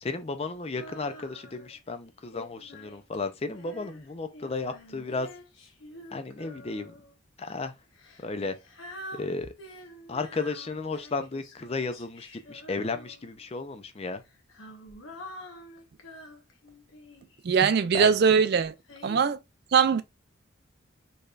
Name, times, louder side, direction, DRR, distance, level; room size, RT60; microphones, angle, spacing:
voice 1, 0.0-5.3 6.1-6.9 7.4-7.7 8.2-8.6 9.1-9.5 10.1-14.2 17.9-18.1, left 3 dB, 30° left, 0.5 m, -34 dB
Female singing, 0.7-1.8 2.3-7.1 7.9-13.5 14.2-17.4 18.1-19.2, left 1 dB, 80° left, 1.1 m, -47 dB
voice 2, 17.4-18.7 19.0-19.4 19.7-20.0, right 6 dB, 50° right, 0.4 m, -21 dB
4.2 x 3.3 x 2.4 m
head